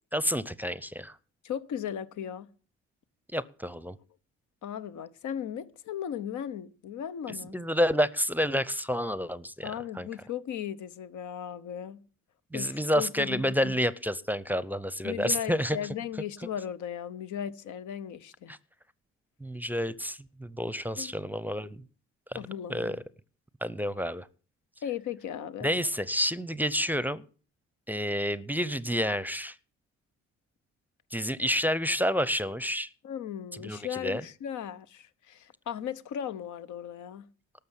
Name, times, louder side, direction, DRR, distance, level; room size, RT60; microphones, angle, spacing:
voice 1, 0.1-1.2 3.3-4.0 7.3-10.1 12.5-15.8 18.5-18.6 19.4-21.8 22.3-22.4 22.7-23.0 23.6-24.3 25.6-27.2 27.9-29.6 31.1-32.9 33.5-34.2, equal, 5° right, 0.7 m, -29 dB
voice 2, 1.4-2.5 4.6-7.6 9.6-12.0 12.5-13.8 15.0-18.5 21.0-21.1 22.4-23.0 24.8-25.7 33.0-37.3, left 9 dB, 75° left, 1.0 m, -37 dB
13.0 x 6.8 x 9.9 m
cardioid pair, 90°, 30 cm